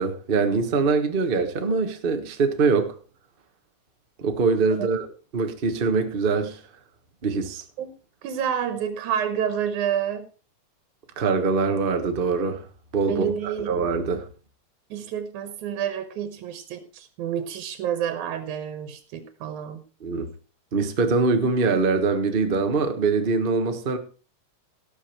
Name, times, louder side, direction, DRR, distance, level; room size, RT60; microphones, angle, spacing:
voice 1, 0.0-2.9 4.2-5.1 5.3-6.6 7.2-7.6 11.2-12.6 12.9-13.2 13.7-14.3 20.0-20.3 20.7-24.0, right 4 dB, 40° right, 0.7 m, -23 dB
voice 2, 8.2-10.3 13.1-13.8 14.9-19.8, right 9 dB, 90° right, 2.5 m, -29 dB
18.0 x 7.0 x 4.5 m
omnidirectional pair, 3.3 m